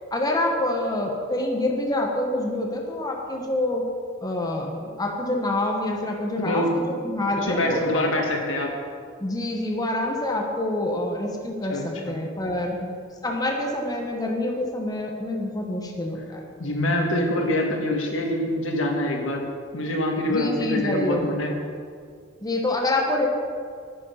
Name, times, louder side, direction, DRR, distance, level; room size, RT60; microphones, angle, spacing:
voice 1, 0.1-3.8 4.2-6.6 7.0-8.2 9.2-12.7 13.2-16.4 20.3-21.3 22.4-23.3, left 1 dB, 20° left, 0 dB, 1.1 m, -26 dB
voice 2, 6.4-7.0 7.4-8.7 11.7-12.1 12.7-12.9 16.6-19.4 19.7-21.5, left 1 dB, 75° left, 1 dB, 1.7 m, -25 dB
9.9 x 9.5 x 5.7 m, 2.1 s
head